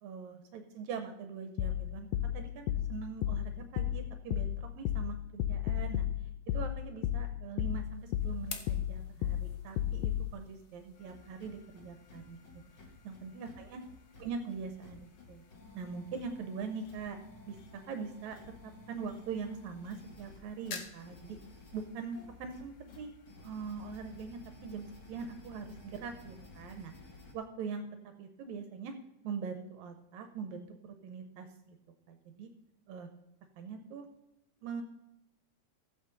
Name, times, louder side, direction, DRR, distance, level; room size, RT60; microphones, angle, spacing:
voice 1, 0.0-2.1 2.3-6.1 6.5-12.4 13.0-13.8 14.2-15.4 15.7-17.2 17.5-21.4 21.7-23.1 23.4-26.9 27.3-27.9 28.2-28.9 29.2-31.8 32.1-32.5 32.9-33.1 33.6-34.1 34.6-34.8, right 5 dB, 75° right, 6 dB, 2.0 m, -42 dB
sound 1, 1.6-10.3, left 12 dB, 80° left, 1.6 m, -34 dB
sound 2, 7.6-24.6, left 6 dB, 60° left, 1.4 m, -54 dB
sound 3, 10.9-27.3, left 3 dB, 45° left, 1.7 m, -54 dB
15.0 x 8.0 x 3.9 m, 0.88 s
omnidirectional pair, 3.4 m